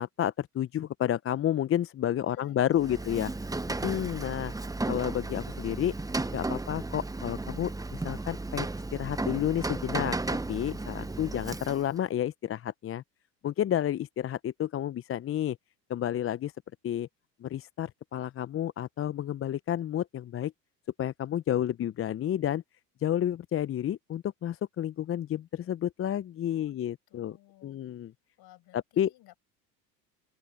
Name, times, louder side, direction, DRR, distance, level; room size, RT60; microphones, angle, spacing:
voice 1, 0.0-3.3 3.8-4.5 4.9-5.9 6.3-10.2 10.5-13.0 13.4-15.6 15.9-16.5 16.8-17.1 17.4-20.5 21.0-22.6 23.0-27.4 27.6-28.1 29.0-29.1, left 11 dB, 25° left, 0.8 m, -30 dB
voice 2, 2.3-3.2 26.5-26.8 27.1-27.8 28.4-29.4, left 15 dB, 50° left, 6.6 m, -58 dB
Rain, 2.7-12.0, right 2 dB, 5° right, 1.2 m, -34 dB
open air
hypercardioid pair, 75°, 49 cm